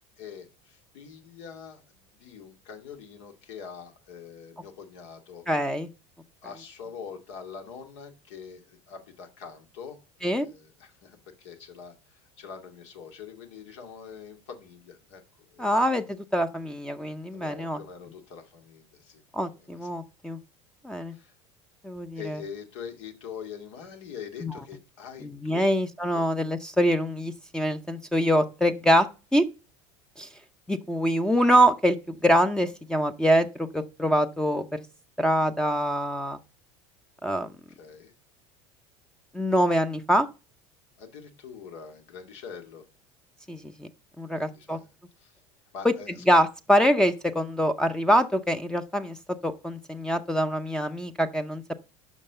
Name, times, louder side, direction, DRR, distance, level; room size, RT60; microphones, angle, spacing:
voice 1, 0.2-5.4 6.4-15.2 15.5-15.8 17.3-19.9 21.1-21.3 22.2-25.6 26.1-26.2 37.7-38.1 41.0-42.9 44.3-45.4 45.7-46.2, left 7 dB, 80° left, 2.3 m, -44 dB
voice 2, 5.5-5.9 10.2-10.5 15.6-17.8 19.3-20.4 20.8-21.1 21.8-22.4 24.4-24.5 25.2-29.1 29.3-29.5 30.2-30.3 30.7-32.0 32.2-34.8 35.2-36.4 37.2-37.5 39.3-40.3 43.5-43.9 44.2-44.8 45.8-45.9 46.3-49.2 49.4-51.7, equal, 5° left, 0.6 m, -24 dB
7.3 x 5.8 x 6.7 m
supercardioid pair, 115°, 15 cm